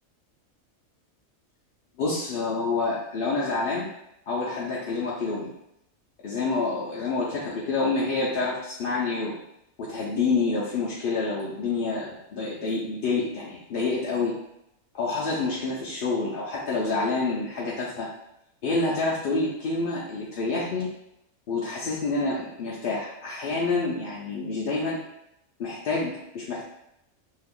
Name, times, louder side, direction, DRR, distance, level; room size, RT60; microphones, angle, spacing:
voice 1, 2.0-3.9 4.3-5.5 6.2-9.3 9.8-14.3 14.9-18.1 18.6-20.9 21.5-25.0 25.6-26.6, left 3 dB, 60° left, -6 dB, 0.6 m, -28 dB
2.7 x 2.4 x 3.5 m, 0.83 s
omnidirectional pair, 1.4 m